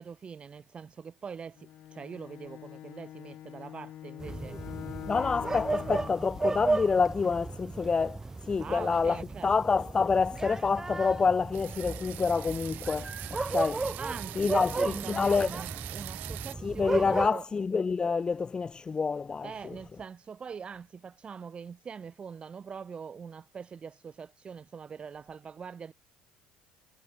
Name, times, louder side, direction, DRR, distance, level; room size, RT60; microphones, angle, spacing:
voice 1, 0.0-4.6 5.1-5.6 8.6-9.5 14.0-17.4 19.4-25.9, right 6 dB, 35° right, 2.1 m, -43 dB
Bowed string instrument, 1.6-6.3, left 12 dB, 55° left, 0.8 m, -44 dB
sound 1, 4.2-17.3, right 3 dB, 15° right, 2.5 m, -34 dB
voice 2, 5.1-8.2 8.5-13.9 14.3-15.5 16.6-19.8, left 5 dB, 25° left, 1.2 m, -28 dB
sound 2, 11.5-16.6, right 18 dB, 70° right, 3.3 m, -42 dB
supercardioid pair, 85°, 3 cm